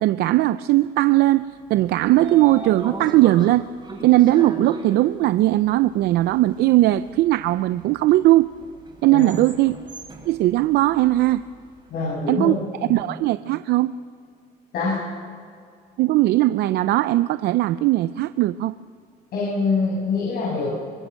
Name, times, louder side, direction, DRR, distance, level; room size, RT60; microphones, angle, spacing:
voice 1, 0.0-1.4 1.7-3.7 4.0-8.5 9.0-9.7 10.3-11.4 12.3-12.5 12.9-13.9 16.0-18.7, right 16 dB, 75° right, 14 dB, 0.5 m, -18 dB
Train / Sliding door, 1.6-11.8, right 2 dB, 30° right, 5.5 m, -39 dB
voice 2, 11.9-12.5 12.8-13.0 14.7-15.0 19.3-20.7, left 4 dB, 65° left, -6 dB, 7.9 m, -24 dB
24.0 x 21.0 x 6.5 m, 2.2 s
cardioid pair, 110°, 17 cm